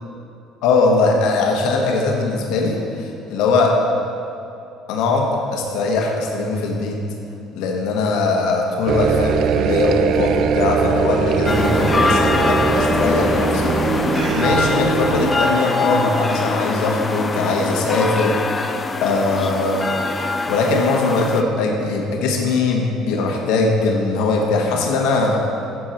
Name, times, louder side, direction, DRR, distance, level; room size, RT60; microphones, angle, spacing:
voice 1, 0.6-3.8 4.9-7.0 7.5-18.5 19.0-19.9 20.5-25.5, left 3 dB, 75° left, 0 dB, 1.3 m, -20 dB
sound 1, 8.9-15.3, right 7 dB, 60° right, 0.4 m, -21 dB
sound 2, 11.5-21.4, left 3 dB, 25° left, 0.5 m, -23 dB
11.5 x 4.8 x 4.4 m, 2.7 s
supercardioid pair, 90°, 0 cm